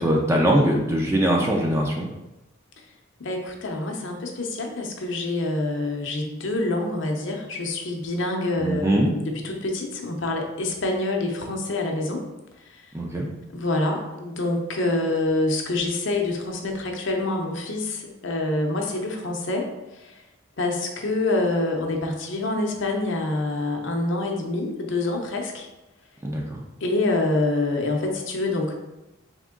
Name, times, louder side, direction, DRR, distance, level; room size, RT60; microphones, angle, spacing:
voice 1, 0.0-2.1 8.6-9.1 12.9-13.3 26.2-26.6, right 1 dB, 15° right, -1 dB, 0.4 m, -22 dB
voice 2, 3.2-12.2 12.6-12.8 13.5-20.2 20.6-25.7 26.8-28.7, left 2 dB, 60° left, 2 dB, 0.7 m, -26 dB
3.6 x 2.9 x 3.7 m, 0.97 s
head